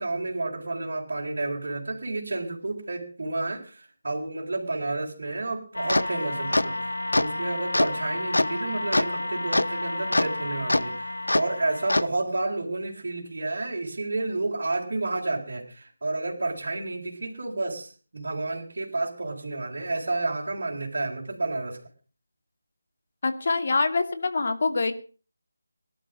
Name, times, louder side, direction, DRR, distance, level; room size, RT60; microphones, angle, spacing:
voice 1, 0.0-21.8, right 2 dB, 60° right, -4 dB, 4.1 m, -30 dB
sound 1, 5.7-12.1, left 1 dB, 85° left, 0.9 m, -26 dB
voice 2, 23.2-24.9, left 3 dB, 50° left, 9 dB, 2.1 m, -25 dB
18.5 x 11.5 x 6.1 m, 0.39 s
figure-of-eight pair, 165°, 0 cm